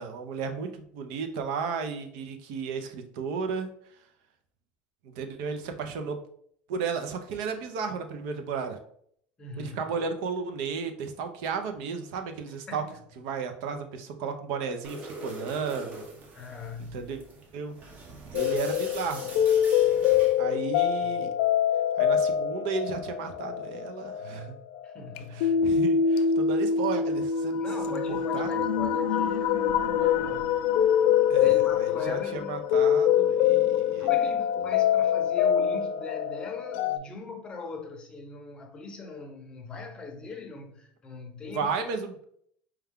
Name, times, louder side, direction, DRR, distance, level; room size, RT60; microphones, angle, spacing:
voice 1, 0.0-3.7 5.0-6.2 6.7-8.8 9.6-12.8 13.2-16.1 16.8-17.2 17.5-17.7 18.3-19.3 20.4-21.3 22.0-24.5 25.3-27.6 27.9-28.5 31.3-34.8 41.5-42.3, right 5 dB, 70° right, 0.6 m, -34 dB
voice 2, 9.4-9.8 12.7-12.9 16.3-17.1 20.5-20.7 21.0-21.1 24.8-25.6 27.6-30.5 31.3-32.6 33.9-41.8, left 3 dB, 20° left, 0.7 m, -40 dB
sound 1, 14.8-20.4, right 2 dB, 30° right, 0.7 m, -43 dB
sound 2, 18.3-37.0, left 8 dB, 70° left, 0.3 m, -25 dB
4.6 x 2.3 x 3.6 m
cardioid pair, 160°, 5 cm